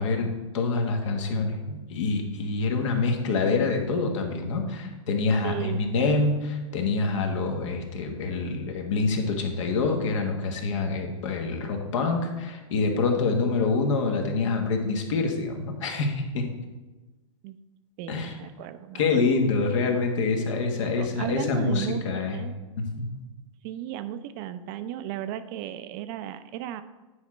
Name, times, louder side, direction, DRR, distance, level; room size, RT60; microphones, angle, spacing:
voice 1, 0.0-16.5 18.1-18.3 18.9-22.4 22.8-23.2, left 3 dB, 65° left, 3 dB, 1.5 m, -26 dB
voice 2, 5.4-6.1 17.4-17.6 18.0-19.2 21.0-22.5 23.6-26.8, right 11 dB, 40° right, 11 dB, 0.5 m, -35 dB
9.5 x 4.9 x 4.3 m, 1.2 s
hypercardioid pair, 120°, 17 cm